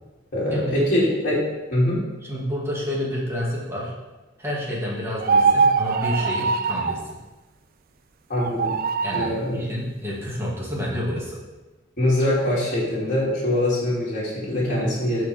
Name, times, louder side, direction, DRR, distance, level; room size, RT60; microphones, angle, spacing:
voice 1, 0.3-2.0 8.3-8.8 9.1-9.7 12.0-15.3, left 1 dB, 45° left, -9 dB, 2.8 m, -23 dB
voice 2, 2.3-3.9 4.4-7.2 9.0-11.4 14.7-14.9, equal, 15° right, -5 dB, 2.1 m, -29 dB
sound 1, 5.2-7.0 8.3-9.4, right 5 dB, 50° right, 0.4 m, -21 dB
12.0 x 4.6 x 3.5 m, 1.2 s
head